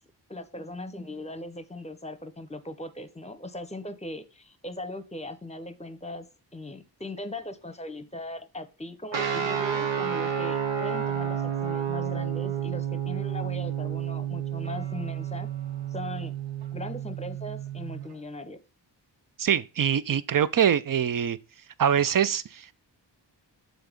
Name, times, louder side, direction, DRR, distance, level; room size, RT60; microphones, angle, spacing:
voice 1, 0.3-15.5 15.9-16.3 16.7-18.6, left 1 dB, 15° left, 0.8 m, -39 dB
sound 1, 9.1-18.1, right 8 dB, 80° right, 1.0 m, -30 dB
voice 2, 19.4-21.4 21.8-22.7, right 8 dB, 50° right, 0.5 m, -24 dB
7.0 x 3.9 x 5.1 m
wide cardioid pair, 90°, 44 cm